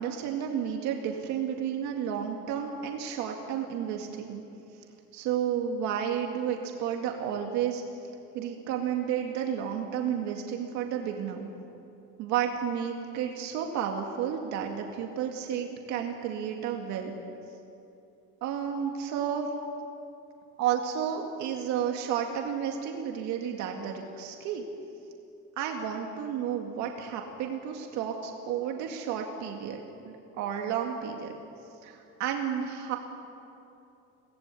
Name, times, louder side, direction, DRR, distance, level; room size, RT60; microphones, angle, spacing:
voice 1, 0.0-4.4 5.1-7.8 8.3-11.5 12.2-17.1 18.4-19.5 20.6-24.7 25.6-29.8 30.4-31.4 31.8-33.0, right 8 dB, 70° right, 2 dB, 2.2 m, -31 dB
24.0 x 18.5 x 8.4 m, 2.7 s
cardioid pair, 165°, 29 cm